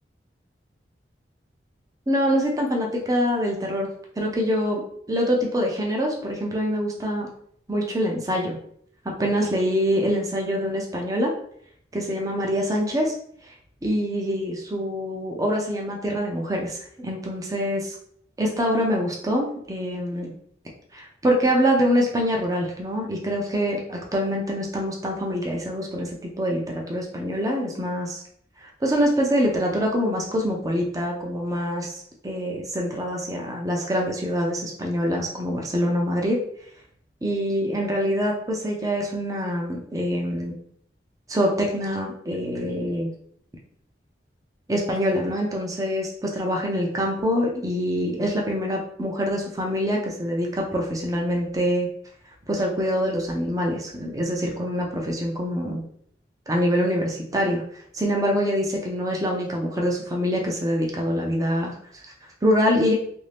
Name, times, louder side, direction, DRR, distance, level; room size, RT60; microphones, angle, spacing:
voice 1, 2.1-3.9 4.2-4.8 5.1-7.3 7.7-8.6 9.2-11.3 11.9-13.1 13.4-13.5 13.8-18.0 18.4-20.3 20.9-28.2 28.6-36.4 37.2-40.5 41.3-43.1 44.7-51.9 52.5-55.8 56.5-62.9, equal, 20° right, 0 dB, 0.5 m, -25 dB
3.1 x 2.6 x 3.4 m, 0.65 s
head